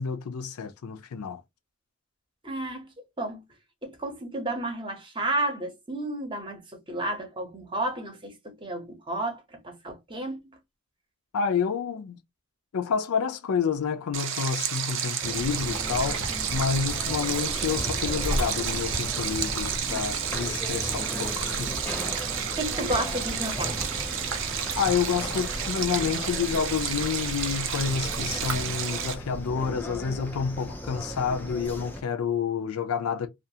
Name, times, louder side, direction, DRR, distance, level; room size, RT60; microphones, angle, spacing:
voice 1, 0.0-1.4 11.3-12.2 12.7-21.8 24.8-33.3, left 6 dB, 85° left, 0.4 m, -29 dB
voice 2, 2.4-2.8 3.2-3.4 3.8-6.6 6.9-10.4 22.6-23.7, right 1 dB, 20° right, 0.7 m, -32 dB
Stream, 14.1-29.1, right 8 dB, 60° right, 0.5 m, -31 dB
sound 1, 15.2-32.0, equal, 10° left, 0.3 m, -37 dB
sound 2, 15.3-28.6, right 1 dB, 90° right, 0.8 m, -37 dB
2.4 x 2.4 x 2.7 m
head